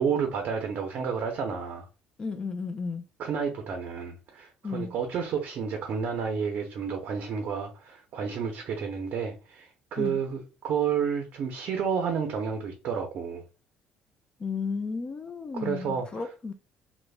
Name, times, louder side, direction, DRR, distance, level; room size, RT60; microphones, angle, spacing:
voice 1, 0.0-1.9 3.2-13.4 15.5-16.3, right 6 dB, 55° right, 0.5 m, -30 dB
voice 2, 2.2-3.0 4.6-4.9 10.0-10.2 14.4-16.5, left 4 dB, 25° left, 0.3 m, -33 dB
3.2 x 2.0 x 2.3 m
cardioid pair, 130°, 3 cm